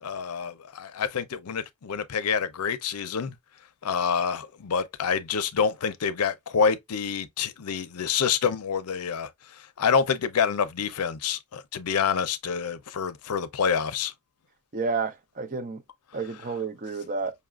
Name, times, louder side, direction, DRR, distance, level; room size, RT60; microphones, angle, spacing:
voice 1, 0.0-3.3 3.8-9.3 9.8-14.1, left 6 dB, 85° left, 0.5 m, -27 dB
voice 2, 14.7-15.8 16.1-17.3, right 4 dB, 35° right, 0.6 m, -30 dB
5.2 x 2.4 x 2.3 m
head